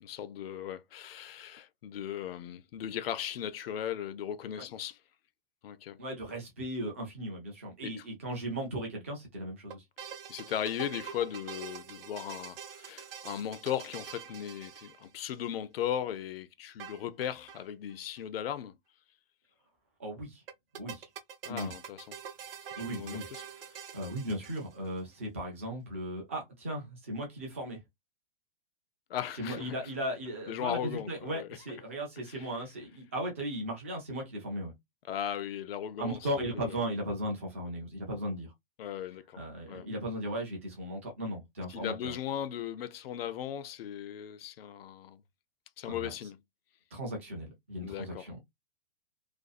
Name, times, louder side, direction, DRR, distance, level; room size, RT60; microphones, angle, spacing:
voice 1, 0.0-5.0 5.6-6.0 7.8-8.1 10.3-18.8 21.4-22.2 22.9-23.4 23.7-23.8 29.1-29.9 30.5-31.6 32.3-32.5 35.1-36.3 36.5-36.9 38.8-39.4 39.7-39.9 41.7-45.2 45.8-46.4 47.8-48.4, left 10 dB, 75° left, 0.5 m, -37 dB
voice 2, 6.0-9.8 20.0-20.4 20.8-21.1 21.5-21.7 22.8-23.2 23.9-27.8 29.4-34.7 36.0-38.5 39.3-42.2 45.9-46.1 46.9-48.4, equal, 15° right, 0.3 m, -37 dB
sound 1, 9.7-15.5 16.8-17.6 17.9-18.0 18.2-18.3 20.5-25.0, right 8 dB, 70° right, 0.7 m, -45 dB
2.5 x 2.3 x 2.3 m
hypercardioid pair, 170°, 29 cm